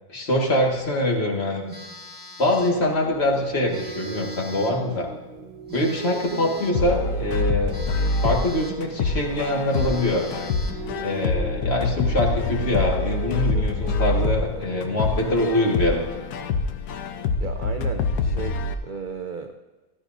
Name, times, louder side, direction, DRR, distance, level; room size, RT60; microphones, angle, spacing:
voice 1, 0.1-1.6 2.4-5.1 5.7-7.7 8.2-10.3 11.0-16.0, left 1 dB, 40° left, 0 dB, 2.0 m, -24 dB
Telephone, 1.7-2.9 3.7-4.9 5.7-6.9 7.7-8.9 9.3-9.4 9.7-10.9, right 1 dB, 5° right, 2.1 m, -41 dB
Piano, 2.4-16.1, right 3 dB, 40° right, 1.2 m, -40 dB
sound 1, 6.7-18.7, left 3 dB, 80° left, 1.3 m, -26 dB
voice 2, 17.4-19.6, right 5 dB, 75° right, 6 dB, 0.4 m, -34 dB
14.0 x 12.0 x 2.6 m, 1.2 s
omnidirectional pair, 1.7 m